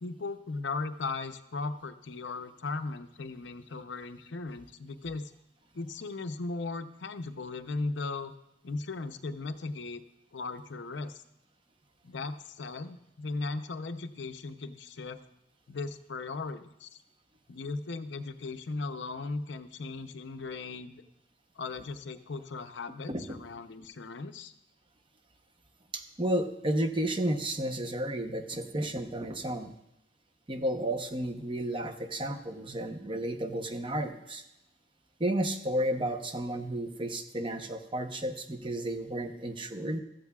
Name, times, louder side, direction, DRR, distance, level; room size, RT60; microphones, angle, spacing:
voice 1, 0.0-5.3 5.7-8.3 8.6-10.0 10.3-11.2 12.0-15.2 15.7-17.0 17.5-21.0 21.6-24.5, left 3 dB, 75° left, 9 dB, 0.6 m, -37 dB
voice 2, 25.9-29.7 30.5-34.4 35.2-40.0, right 1 dB, 30° right, 6 dB, 0.8 m, -32 dB
15.5 x 13.5 x 2.3 m, 0.84 s
head